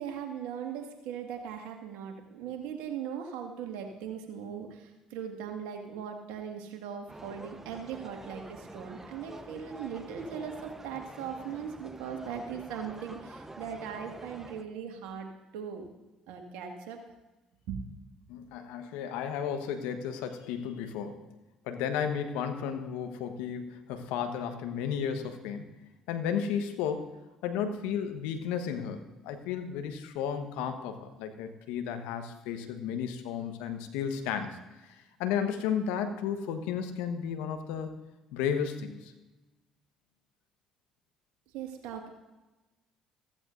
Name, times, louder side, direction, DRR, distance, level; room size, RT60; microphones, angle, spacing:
voice 1, 0.0-15.9 16.3-17.0 17.7-17.8 41.5-42.1, right 7 dB, 75° right, 3 dB, 1.9 m, -39 dB
sound 1, 7.1-14.6, right 2 dB, 15° right, 1.0 m, -47 dB
voice 2, 18.3-21.2 21.6-25.6 26.1-27.1 27.4-34.6 35.2-37.9 38.3-39.1, left 7 dB, 75° left, 7 dB, 1.2 m, -33 dB
15.0 x 15.0 x 2.6 m, 1.1 s
hypercardioid pair, 55°, 2 cm